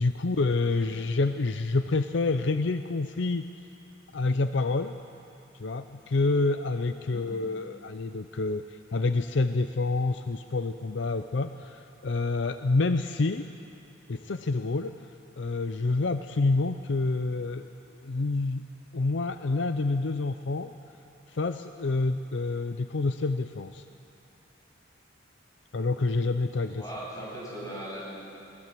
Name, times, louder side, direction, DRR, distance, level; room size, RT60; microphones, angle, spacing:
voice 1, 0.0-3.5 4.1-5.0 5.6-13.5 14.1-15.1 15.4-17.7 18.0-18.7 18.9-20.7 21.3-23.8 25.7-26.8, left 3 dB, 60° left, 9 dB, 0.6 m, -28 dB
voice 2, 26.6-28.1, right 1 dB, 20° left, -5 dB, 7.6 m, -40 dB
21.0 x 21.0 x 7.6 m, 2.7 s
head